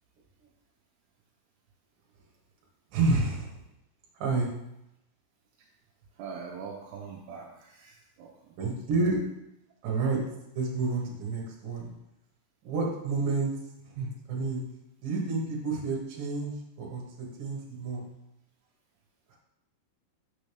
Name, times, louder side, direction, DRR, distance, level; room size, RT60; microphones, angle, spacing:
voice 1, 2.9-3.6 4.1-4.5 8.6-9.2 9.8-10.2 10.5-11.9 12.6-13.5 13.8-14.6 15.0-18.1 19.3-19.4, right 3 dB, 60° right, -2 dB, 2.9 m, -29 dB
voice 2, 6.2-8.6, right 5 dB, 80° right, -1 dB, 2.8 m, -43 dB
6.7 x 6.2 x 3.4 m, 0.86 s
omnidirectional pair, 4.8 m